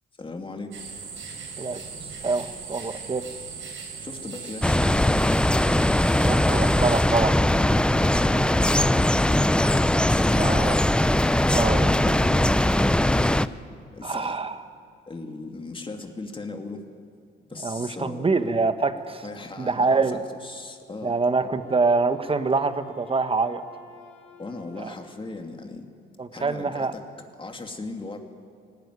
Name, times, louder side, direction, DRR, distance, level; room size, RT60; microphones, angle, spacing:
voice 1, 0.2-0.9 4.0-5.3 7.6-8.5 8.8-9.6 9.9-10.5 11.4-12.5 12.8-13.4 13.9-14.4 15.1-16.8 17.5-18.5 19.2-21.1 24.4-25.9 26.3-27.0 27.4-28.2, left 3 dB, 25° left, 4 dB, 2.4 m, -37 dB
sound 1, 0.7-7.0, right 5 dB, 80° right, 7.3 m, -38 dB
voice 2, 2.2-3.2 6.2-7.4 10.4-10.8 11.5-12.0 14.0-14.6 17.6-19.2 19.6-20.2 21.0-23.6 24.8-24.9 26.2-26.9, right 4 dB, 25° right, 9 dB, 1.5 m, -25 dB
sound 2, 4.6-13.5, left 1 dB, 5° left, 0.6 m, -20 dB
Wind instrument woodwind instrument, 21.2-25.3, left 2 dB, 70° left, 5.7 m, -52 dB
20.0 x 18.5 x 9.8 m, 2.2 s
cardioid pair, 90°, 20 cm